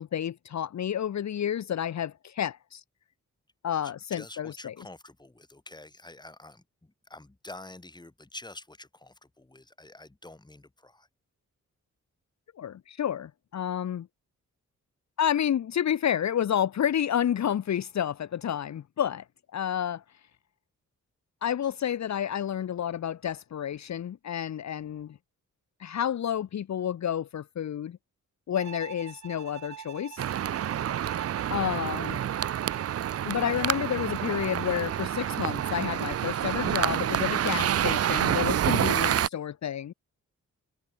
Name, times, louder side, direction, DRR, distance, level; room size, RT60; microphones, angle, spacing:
voice 1, 0.0-2.8 3.6-4.7 12.6-14.1 15.2-19.2 19.5-20.0 21.4-25.2 25.8-28.0 28.5-30.2 31.5-32.2 33.2-39.9, left 9 dB, 65° left, 1.0 m, -30 dB
voice 2, 4.1-11.1, left 2 dB, 15° left, 5.2 m, -47 dB
Bowed string instrument, 28.6-36.9, right 9 dB, 65° right, 1.8 m, -45 dB
sound 1, 30.2-39.3, right 10 dB, 50° right, 0.5 m, -28 dB
wide cardioid pair, 135°, 30 cm